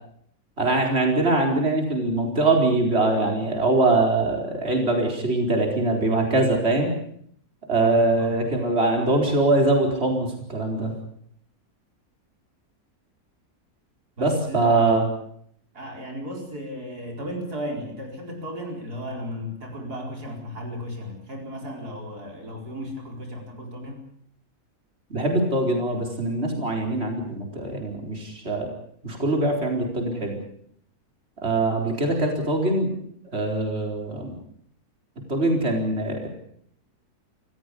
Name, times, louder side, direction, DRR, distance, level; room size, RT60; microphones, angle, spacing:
voice 1, 0.6-6.9 7.7-10.9 14.2-15.1 25.1-28.7 29.0-30.4 31.4-32.9 33.3-34.4 35.3-36.3, right 2 dB, 40° right, 2 dB, 4.8 m, -22 dB
voice 2, 7.8-8.3 14.2-14.7 15.7-24.0, equal, 85° right, 2 dB, 5.0 m, -35 dB
26.5 x 15.5 x 8.5 m, 0.67 s
omnidirectional pair, 1.6 m